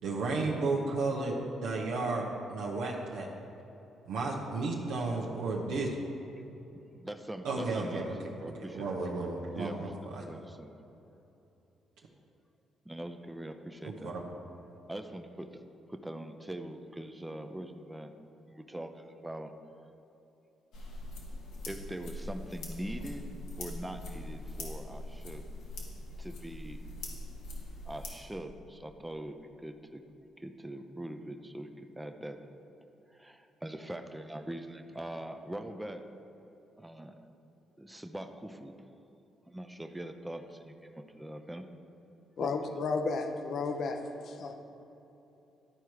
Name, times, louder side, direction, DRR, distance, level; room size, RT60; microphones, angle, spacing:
voice 1, 0.0-3.3 4.1-5.9 7.4-8.2 8.4-10.2 13.8-14.2, right 3 dB, 85° right, -2 dB, 0.8 m, -33 dB
voice 2, 6.9-8.1 8.4-10.7 12.9-14.2 14.9-15.6 15.9-18.1 18.5-19.6 21.7-25.5 26.2-26.8 27.8-30.0 30.4-32.4 33.1-36.1 36.8-37.2 37.8-38.9 39.5-41.7 42.4-42.8, right 1 dB, 10° right, 6 dB, 0.5 m, -42 dB
sound 1, 20.7-28.1, left 1 dB, 90° left, 1.6 m, -42 dB
voice 3, 42.4-44.5, left 4 dB, 60° left, 5 dB, 0.7 m, -33 dB
12.0 x 4.5 x 4.8 m, 3.0 s
cardioid pair, 90°, 0 cm